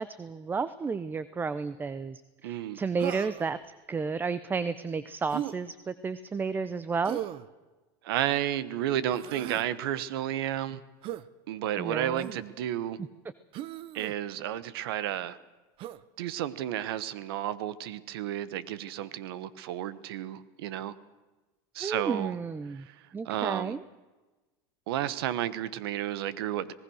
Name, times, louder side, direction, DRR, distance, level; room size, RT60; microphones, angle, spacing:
voice 1, 0.0-3.6 3.9-7.2 11.8-12.3 21.8-22.9 23.1-23.8, right 5 dB, 15° right, 16 dB, 0.6 m, -32 dB
voice 2, 2.4-2.8 8.0-10.8 11.5-13.0 13.9-15.4 16.2-20.9 21.7-22.3 22.7-23.0 23.2-23.7 24.9-26.7, right 12 dB, 85° right, 17 dB, 1.2 m, -32 dB
Human voice, 3.0-3.5 5.3-5.6 7.0-7.5 9.1-9.7 11.0-11.3 12.2-12.5 13.5-14.1 15.8-16.0, right 13 dB, 45° right, 0.9 m, -37 dB
25.5 x 19.0 x 6.4 m, 1.2 s
supercardioid pair, 135°, 12 cm